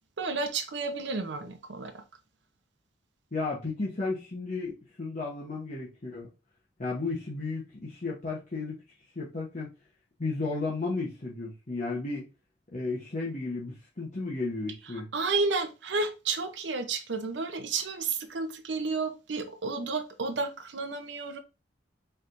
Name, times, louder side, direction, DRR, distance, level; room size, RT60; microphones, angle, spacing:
voice 1, 0.2-2.0 15.1-21.4, right 4 dB, 80° right, 0.7 m, -31 dB
voice 2, 3.3-6.3 6.8-8.8 9.1-9.7 10.2-12.3 12.7-15.1, left 3 dB, 45° left, 1.0 m, -33 dB
4.4 x 3.4 x 2.6 m
head